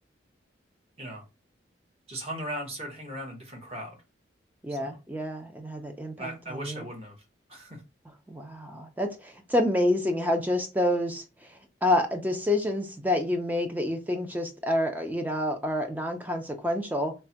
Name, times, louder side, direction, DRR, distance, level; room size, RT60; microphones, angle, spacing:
voice 1, 2.1-4.0 4.7-5.0 6.2-7.2 7.5-7.8, right 1 dB, 35° right, 0.9 m, -38 dB
voice 2, 4.6-6.8 8.3-11.2 11.8-17.1, left 1 dB, 10° right, 0.3 m, -28 dB
3.1 x 2.1 x 2.7 m
head